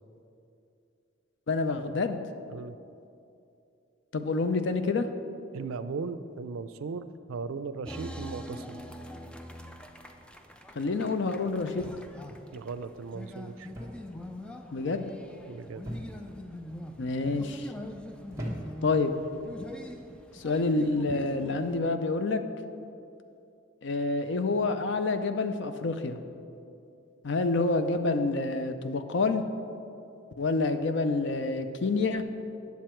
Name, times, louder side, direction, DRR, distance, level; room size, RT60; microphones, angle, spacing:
voice 1, 1.5-2.2 4.1-5.1 10.8-11.9 14.7-15.1 17.0-17.7 18.8-19.1 20.3-22.4 23.8-26.2 27.2-29.4 30.4-32.2, left 3 dB, 60° left, 9 dB, 0.5 m, -28 dB
voice 2, 5.5-8.8 12.5-13.7 15.5-15.8, right 4 dB, 85° right, 12 dB, 0.4 m, -37 dB
sound 1, 7.8-21.8, left 1 dB, 5° left, 0.3 m, -44 dB
sound 2, 11.8-12.3 13.7-14.1 14.4-14.8 15.8-16.4 17.1-17.5 18.3-19.0 19.9-20.2, equal, 15° right, 1.1 m, -40 dB
9.4 x 7.1 x 4.4 m, 2.6 s
head